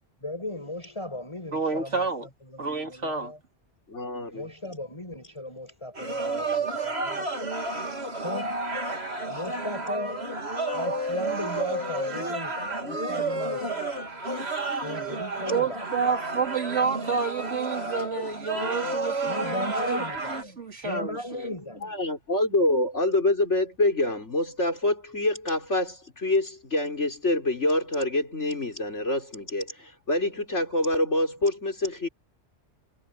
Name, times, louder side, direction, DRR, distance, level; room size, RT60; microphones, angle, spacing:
voice 1, 0.2-2.1 2.4-3.4 4.3-7.3 8.1-8.6 9.3-10.3 10.7-14.2 14.8-15.9 19.2-20.6 20.8-21.9, left 1 dB, 25° left, 6.3 m, -37 dB
voice 2, 1.5-2.3 2.6-3.3 15.5-21.5, right 5 dB, 90° right, 3.5 m, -29 dB
voice 3, 3.9-4.5 21.8-32.1, left 1 dB, 80° left, 6.0 m, -26 dB
sound 1, 6.0-20.4, right 2 dB, 60° right, 3.3 m, -31 dB
omnidirectional pair, 1.2 m